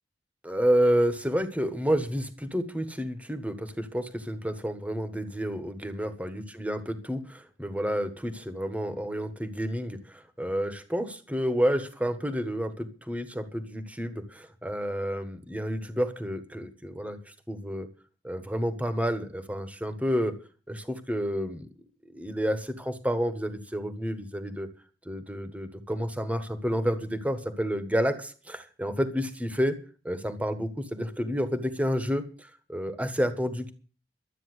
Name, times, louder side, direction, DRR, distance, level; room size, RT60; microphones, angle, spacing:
voice 1, 0.4-17.2 17.5-17.9 18.2-20.3 20.7-21.7 22.1-24.7 25.0-29.8 30.0-33.7, equal, 10° right, 10 dB, 1.4 m, -30 dB
12.5 x 8.9 x 8.0 m, 0.38 s
head